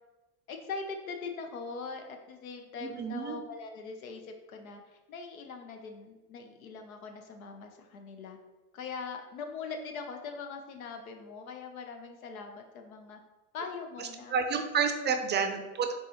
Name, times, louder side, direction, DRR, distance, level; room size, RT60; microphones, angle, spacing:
voice 1, 0.5-8.4 8.7-13.2 13.5-14.4 15.1-15.2, left 4 dB, 85° left, 5 dB, 0.8 m, -41 dB
voice 2, 2.8-3.4 14.0-15.9, right 6 dB, 25° right, 7 dB, 0.5 m, -30 dB
4.6 x 3.8 x 3.0 m, 1.1 s
hypercardioid pair, 90°, 40 cm